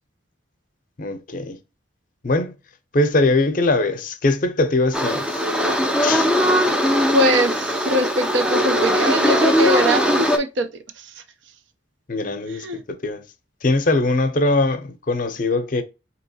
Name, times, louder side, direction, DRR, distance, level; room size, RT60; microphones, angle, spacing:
voice 1, 1.0-1.6 2.2-2.5 2.9-5.4 6.0-6.3 12.1-12.7 13.0-13.2 13.6-15.8, left 2 dB, 45° left, 0.6 m, -21 dB
sound 1, 4.9-10.4, equal, 5° right, 0.4 m, -19 dB
voice 2, 7.1-10.7 11.0-11.1 12.5-12.8, equal, 80° right, 0.6 m, -22 dB
4.5 x 2.9 x 2.7 m
head